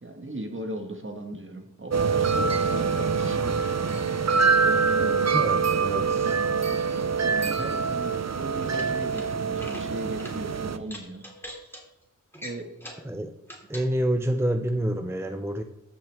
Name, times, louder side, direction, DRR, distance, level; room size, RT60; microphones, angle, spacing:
voice 1, 0.0-3.8 4.5-5.2 7.2-11.2 12.4-12.7, right 1 dB, 40° right, 4 dB, 1.7 m, -37 dB
sound 1, 1.9-10.8, right 5 dB, 55° right, 0.7 m, -25 dB
voice 2, 5.3-6.4 13.0-13.3 13.7-15.6, right 1 dB, 10° right, 6 dB, 0.6 m, -28 dB
sound 2, 8.6-9.3 9.5-9.9 10.2-10.4 10.8-11.8 12.3-13.1 13.4-13.9, equal, 5° left, 2.7 m, -42 dB
14.0 x 6.0 x 3.5 m, 0.90 s
wide cardioid pair, 50°, 31 cm